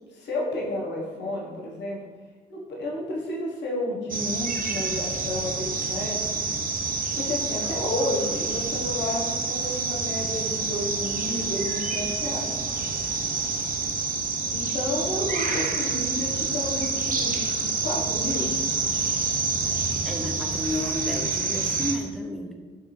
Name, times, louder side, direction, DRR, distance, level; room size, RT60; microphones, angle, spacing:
voice 1, 0.1-2.0 2.5-6.2 7.1-12.5 14.5-17.4 17.8-18.5, left 1 dB, 65° left, -3 dB, 1.1 m, -31 dB
sound 1, 4.1-21.9, right 4 dB, 45° right, 0.6 m, -28 dB
voice 2, 20.0-22.6, left 1 dB, ahead, 2 dB, 0.6 m, -32 dB
3.5 x 3.3 x 3.1 m, 1.4 s
hypercardioid pair, 45°, 19 cm